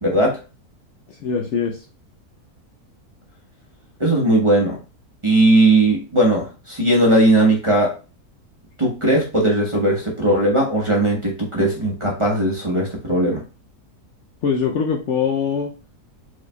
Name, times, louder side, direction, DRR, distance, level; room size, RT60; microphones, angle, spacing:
voice 1, 0.0-0.4 4.0-4.8 5.2-7.9 8.8-13.4, right 1 dB, 25° right, -2 dB, 0.9 m, -18 dB
voice 2, 1.1-1.8 14.4-15.7, left 6 dB, 65° left, 0 dB, 0.8 m, -22 dB
4.6 x 4.1 x 2.2 m, 0.33 s
omnidirectional pair, 1.6 m